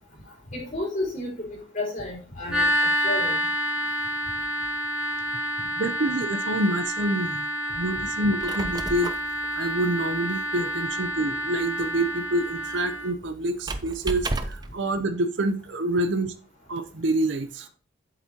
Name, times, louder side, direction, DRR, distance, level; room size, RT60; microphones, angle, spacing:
voice 1, 0.5-1.5 1.7-3.4, left 1 dB, 40° left, -5 dB, 4.0 m, -31 dB
sound 1, 2.5-13.1, equal, 5° right, 3.0 m, -28 dB
voice 2, 5.8-7.5 7.8-9.1 9.5-16.3 16.7-17.7, right 1 dB, 70° right, 9 dB, 0.7 m, -27 dB
Squeak, 8.2-14.8, right 2 dB, 20° right, 0.5 m, -35 dB
8.1 x 7.3 x 2.9 m, 0.38 s
head